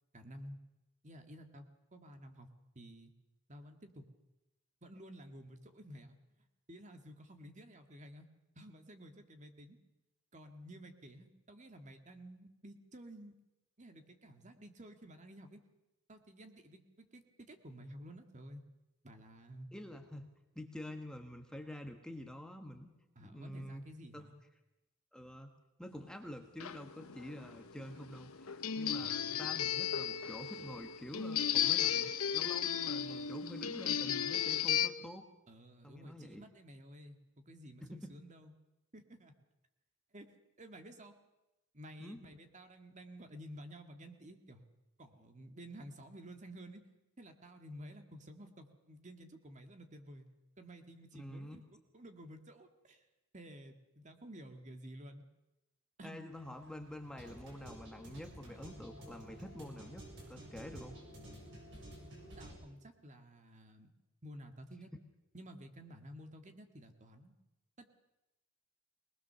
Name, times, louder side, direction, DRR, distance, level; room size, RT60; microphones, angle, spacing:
voice 1, 0.1-0.6 1.0-1.7 1.9-2.5 2.8-3.1 3.5-4.1 4.8-6.2 6.7-8.3 8.6-9.8 10.3-13.3 13.8-15.6 16.1-18.6 19.0-19.7 23.2-24.4 29.0-29.4 35.5-38.5 38.9-39.3 40.1-41.2 41.7-44.6 45.0-46.8 47.2-50.3 50.6-53.1 53.3-55.2 56.0-56.2 62.4-63.9 64.2-64.9 65.3-67.3 67.8-67.9, equal, 35° right, 6 dB, 1.9 m, -52 dB
voice 2, 19.7-20.3 20.5-22.9 23.2-23.8 24.1-24.3 25.1-35.3 35.8-36.4 37.8-38.2 42.0-42.2 51.1-51.6 56.0-61.0, left 1 dB, 5° left, 4 dB, 1.4 m, -48 dB
sound 1, 26.6-34.9, left 9 dB, 90° left, 1.0 m, -35 dB
sound 2, 56.3-62.5, right 1 dB, 60° right, 7.0 m, -51 dB
22.5 x 20.0 x 6.9 m, 0.95 s
head